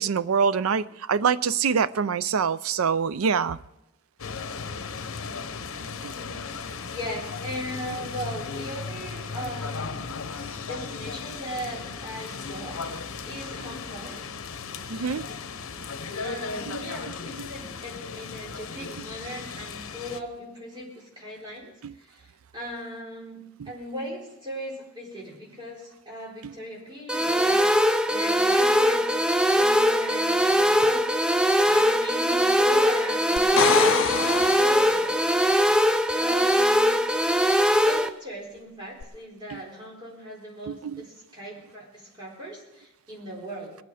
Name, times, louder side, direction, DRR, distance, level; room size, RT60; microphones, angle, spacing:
voice 1, 0.0-3.6 6.0-6.1 14.9-15.2 16.7-16.8 17.4-17.5 21.8-21.9 26.4-26.5 39.5-39.6 40.7-41.0, right 6 dB, 90° right, 0.5 m, -25 dB
sound 1, 4.2-20.2, left 5 dB, 85° left, 0.8 m, -36 dB
voice 2, 6.0-6.4 6.9-10.0 10.7-14.3 15.3-15.4 16.2-22.3 22.5-29.1 29.5-31.1 31.6-35.2 36.1-37.1 37.8-43.8, equal, 20° right, 4.3 m, -38 dB
sound 2, 27.1-38.1, equal, 5° right, 0.4 m, -21 dB
sound 3, 33.4-35.3 39.0-39.1, left 7 dB, 65° left, 0.4 m, -26 dB
21.0 x 9.3 x 4.9 m
head